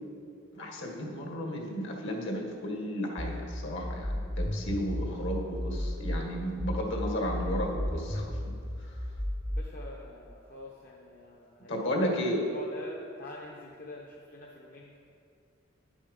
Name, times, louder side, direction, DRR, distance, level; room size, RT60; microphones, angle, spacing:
voice 1, 0.5-8.5 8.8-9.0 11.7-12.4, equal, 65° left, 1 dB, 1.8 m, -33 dB
sound 1, 3.2-6.2 6.6-9.6, equal, ahead, 0.6 m, -33 dB
voice 2, 9.5-12.2 12.5-15.0, left 2 dB, 45° left, -2 dB, 0.9 m, -46 dB
10.5 x 7.3 x 5.4 m, 2.4 s
head